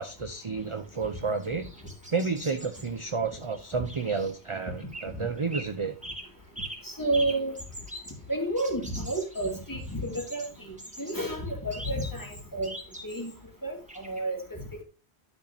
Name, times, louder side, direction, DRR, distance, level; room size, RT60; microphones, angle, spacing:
voice 1, 0.0-1.7 2.1-6.0, right 4 dB, 35° right, 8 dB, 0.7 m, -31 dB
sound 1, 0.6-5.1 5.4-5.7 6.0-13.4 13.9-14.2, right 1 dB, 5° right, 2.6 m, -44 dB
voice 2, 6.8-7.5 8.3-12.7 13.0-13.3 13.6-14.6, right 1 dB, 20° left, 1 dB, 2.6 m, -31 dB
12.0 x 6.3 x 2.8 m, 0.34 s
omnidirectional pair, 1.1 m